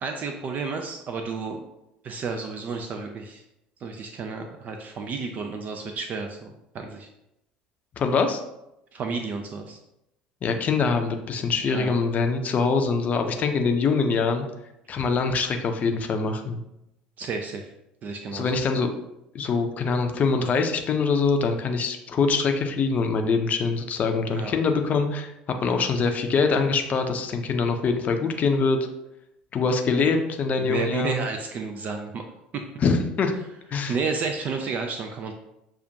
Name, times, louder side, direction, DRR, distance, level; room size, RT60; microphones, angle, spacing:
voice 1, 0.0-1.6 2.0-3.4 3.8-7.1 8.9-9.8 11.7-11.9 17.2-17.7 18.0-18.6 24.3-24.6 30.6-32.2 32.5-32.6 33.8-35.3, right 4 dB, 35° right, 4 dB, 0.4 m, -31 dB
voice 2, 8.0-8.4 10.4-14.5 14.9-16.6 18.3-18.9 19.3-25.3 25.6-28.8 29.5-31.2 32.8-33.3 33.7-34.0, left 4 dB, 35° left, 6 dB, 0.5 m, -24 dB
6.5 x 2.4 x 2.7 m, 0.86 s
figure-of-eight pair, 65°, 4 cm